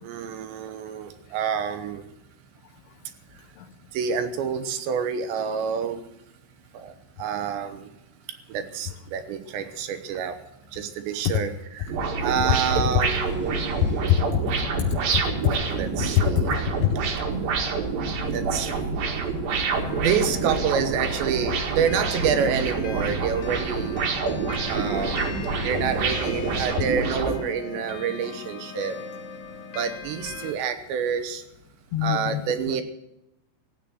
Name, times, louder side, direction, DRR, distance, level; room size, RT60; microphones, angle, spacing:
voice 1, 0.0-2.1 3.3-3.4 3.9-6.0 6.7-7.9 8.3-10.4 10.7-13.5 15.7-16.6 18.3-18.7 19.9-24.1 24.7-25.3 25.6-29.0 29.7-31.4 32.0-32.8, right 7 dB, 75° right, 9 dB, 3.3 m, -28 dB
sound 1, 11.9-27.4, right 4 dB, 60° right, 3.3 m, -27 dB
sound 2, 12.8-14.2 15.2-16.0 16.4-16.9 18.5-19.0 19.9-20.8 21.4-23.6 24.8-26.9 27.4-27.5 29.1-29.2, left 3 dB, 5° right, 0.9 m, -43 dB
voice 2, 13.8-14.9 15.4-15.6 16.8-16.9 31.9-32.4 32.7-32.8, left 11 dB, 80° left, 7 dB, 2.4 m, -24 dB
sound 3, 19.6-30.5, left 5 dB, 60° left, 3.1 m, -39 dB
16.5 x 8.8 x 7.7 m, 0.87 s
omnidirectional pair, 5.3 m